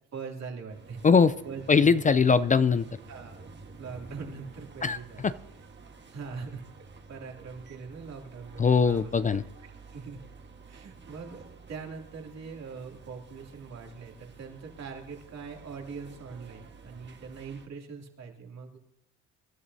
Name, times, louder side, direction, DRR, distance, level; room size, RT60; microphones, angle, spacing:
voice 1, 0.1-1.1 1.4-2.0 3.1-3.4 3.8-5.3 6.1-6.6 7.1-9.4 9.9-10.2 10.7-18.8, right 5 dB, 60° right, 1 dB, 2.8 m, -42 dB
sound 1, 0.7-17.7, right 4 dB, 35° right, 1.5 m, -51 dB
voice 2, 1.7-2.8 4.8-5.0 5.2-5.3 8.6-9.4, left 5 dB, 25° left, 15 dB, 0.4 m, -21 dB
25.0 x 12.0 x 2.7 m, 0.77 s
cardioid pair, 90°, 30 cm